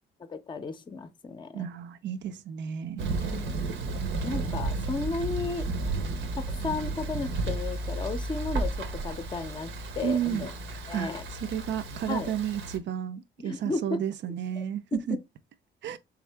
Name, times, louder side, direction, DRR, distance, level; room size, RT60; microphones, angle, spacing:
voice 1, 0.2-1.6 3.3-5.7 6.4-10.5 10.9-11.2 12.1-12.3 13.4-14.0 14.6-14.7 15.1-15.2, left 4 dB, 25° left, 0.5 m, -34 dB
voice 2, 1.5-3.1 10.0-11.1 11.4-15.2 15.8-16.0, right 9 dB, 65° right, 0.5 m, -32 dB
Thunder, 3.0-12.8, right 3 dB, 80° right, 0.9 m, -33 dB
3.6 x 3.5 x 3.3 m
cardioid pair, 90°, 20 cm